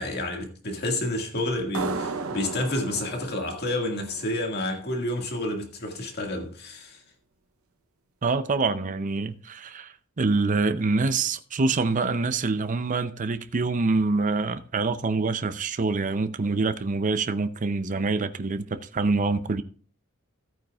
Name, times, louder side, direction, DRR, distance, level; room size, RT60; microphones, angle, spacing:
voice 1, 0.0-7.0, left 1 dB, 50° left, 1.9 m, -29 dB
sound 1, 1.7-5.1, right 4 dB, 80° right, 0.8 m, -35 dB
voice 2, 8.2-19.6, right 3 dB, 35° right, 0.6 m, -26 dB
14.5 x 9.0 x 2.4 m
head